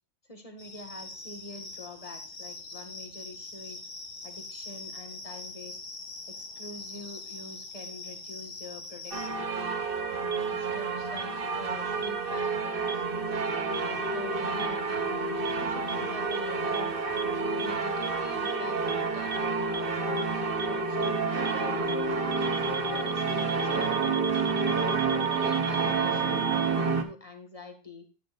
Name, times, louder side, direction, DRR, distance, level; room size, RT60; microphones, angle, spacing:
voice 1, 0.3-3.8 4.2-5.8 6.3-9.8 10.2-13.0 13.5-15.2 15.5-17.0 17.6-19.5 19.8-20.3 20.6-22.2 22.6-24.9 25.2-28.0, left 2 dB, 30° left, 4 dB, 1.9 m, -45 dB
sound 1, 0.6-9.3, left 3 dB, 45° left, 1.7 m, -42 dB
sound 2, 9.1-27.0, right 4 dB, 55° right, 1.4 m, -29 dB
sound 3, 10.3-10.4 11.2-11.3 12.0-12.1 12.9-13.0 13.7-13.8 14.6-14.7 15.5-15.6 15.9-16.0 16.3-16.4 16.7-16.8 17.2-17.3 17.6-17.7 18.0-18.1 18.5-18.6 18.9-19.0 19.3-19.4 19.7-19.8 20.2-20.3 20.6-20.7 21.0-21.1 21.5-21.6 21.9-22.0 22.3-26.7, right 4 dB, 30° right, 0.7 m, -36 dB
11.5 x 10.0 x 2.5 m, 0.34 s
omnidirectional pair, 1.1 m